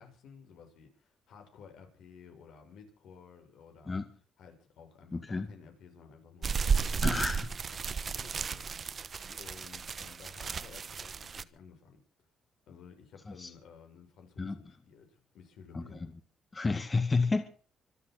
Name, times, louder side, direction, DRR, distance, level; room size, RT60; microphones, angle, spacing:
voice 1, 0.0-4.0 4.4-7.3 7.7-9.1 9.4-12.0 12.7-16.0, left 6 dB, 80° left, 6.4 m, -54 dB
voice 2, 5.1-5.5 7.0-7.5 13.3-13.5 14.4-14.6 15.7-16.0 16.5-17.5, left 3 dB, 25° left, 1.8 m, -30 dB
sound 1, 6.4-11.4, right 6 dB, 45° right, 1.1 m, -33 dB
25.5 x 8.7 x 6.5 m
cardioid pair, 90°, 0 cm